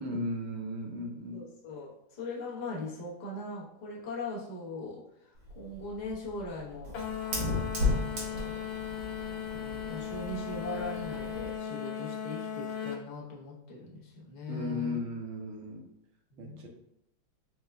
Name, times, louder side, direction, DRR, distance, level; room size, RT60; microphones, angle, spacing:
voice 1, 0.0-1.4 14.5-15.8 16.4-16.7, left 1 dB, 70° right, 1 dB, 1.4 m, -36 dB
voice 2, 1.3-6.9 7.7-8.6 9.5-15.0 16.3-16.7, left 3 dB, 50° left, -5 dB, 0.5 m, -40 dB
Fire, 5.4-11.6, left 2 dB, 90° right, 2.0 m, -35 dB
sound 1, 6.9-13.0, left 8 dB, 85° left, 1.4 m, -37 dB
4.5 x 2.1 x 3.4 m, 0.78 s
omnidirectional pair, 2.2 m